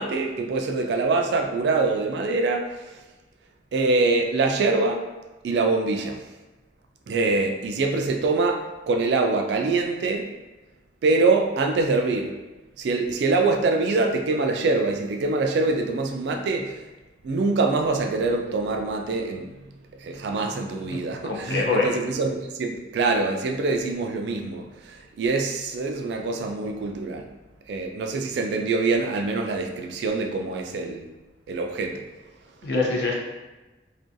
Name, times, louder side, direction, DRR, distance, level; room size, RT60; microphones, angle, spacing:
voice 1, 0.0-3.0 3.7-5.1 5.4-6.2 7.1-10.3 11.0-12.3 12.8-16.8 17.2-19.5 20.0-27.3 27.7-31.1 31.5-32.0, right 3 dB, 65° right, 4 dB, 0.3 m, -24 dB
voice 2, 21.2-21.9 32.6-33.1, left 3 dB, 60° left, -1 dB, 0.5 m, -24 dB
2.4 x 2.2 x 2.6 m, 1.1 s
head